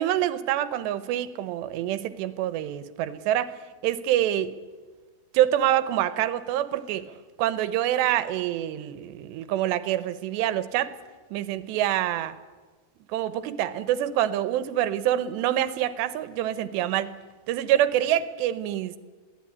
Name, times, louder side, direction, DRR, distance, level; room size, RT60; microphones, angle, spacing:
voice 1, 0.0-3.5 3.8-4.5 5.3-7.0 7.4-10.9 11.3-12.3 13.1-17.1 17.5-19.0, right 12 dB, 80° right, 14 dB, 3.0 m, -26 dB
23.0 x 16.0 x 9.7 m, 1.4 s
omnidirectional pair, 4.9 m